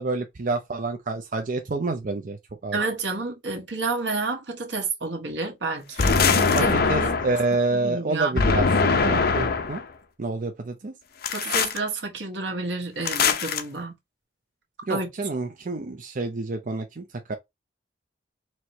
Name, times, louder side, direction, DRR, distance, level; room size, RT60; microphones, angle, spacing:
voice 1, 0.0-2.4 2.6-2.8 6.5-9.8 10.2-10.9 14.9-17.3, right 3 dB, 45° right, 0.6 m, -28 dB
voice 2, 2.7-7.2 7.7-8.4 11.3-13.9 14.9-15.1, right 3 dB, 85° right, 1.4 m, -30 dB
sound 1, 6.0-7.5 8.4-9.8 11.2-11.8 13.0-13.6, left 4 dB, 60° left, 0.7 m, -22 dB
4.5 x 2.9 x 2.8 m
head